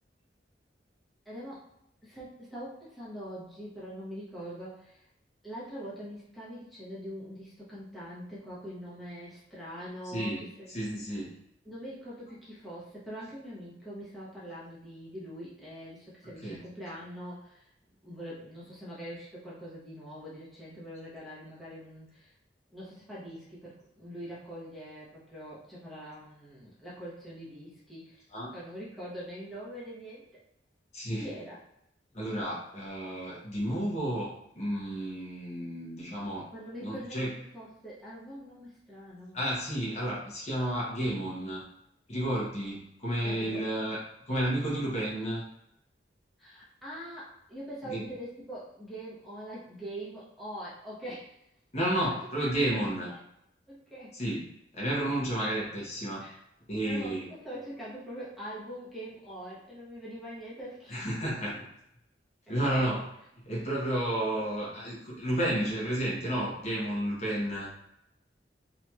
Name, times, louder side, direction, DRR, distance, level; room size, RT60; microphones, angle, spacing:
voice 1, 1.2-1.7 2.0-5.0 5.4-10.7 11.6-17.7 18.0-22.3 22.7-28.2 28.5-30.3 31.2-31.6 36.5-37.2 37.5-39.4 43.2-43.6 46.4-51.4 52.0-52.2 52.4-52.8 53.7-54.1 56.2-56.4 56.8-61.0, equal, ahead, -10 dB, 0.9 m, -43 dB
voice 2, 10.0-11.4 16.4-16.6 28.3-28.5 30.9-31.3 32.1-36.5 36.8-37.3 39.3-41.6 42.1-44.0 44.3-45.4 47.8-48.1 51.7-53.1 54.1-54.5 54.7-56.2 56.7-57.3 60.9-61.5 62.5-63.1 63.4-67.7, right 1 dB, 40° left, -5 dB, 0.8 m, -31 dB
2.9 x 2.7 x 2.3 m, 0.78 s
head